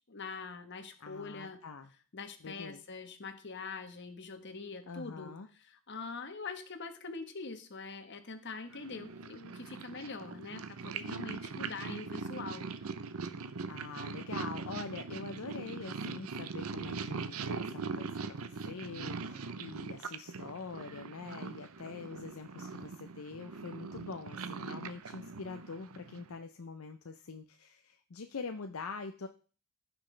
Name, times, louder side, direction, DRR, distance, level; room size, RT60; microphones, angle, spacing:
voice 1, 0.0-1.6 2.1-12.7, left 4 dB, 55° left, 8 dB, 1.2 m, -44 dB
voice 2, 1.0-1.9 2.4-2.8 4.9-5.5 13.7-29.3, left 4 dB, 75° left, 7 dB, 0.6 m, -44 dB
Purr, 8.7-26.4, right 4 dB, 90° right, 0.7 m, -41 dB
15.0 x 6.0 x 3.3 m, 0.40 s
head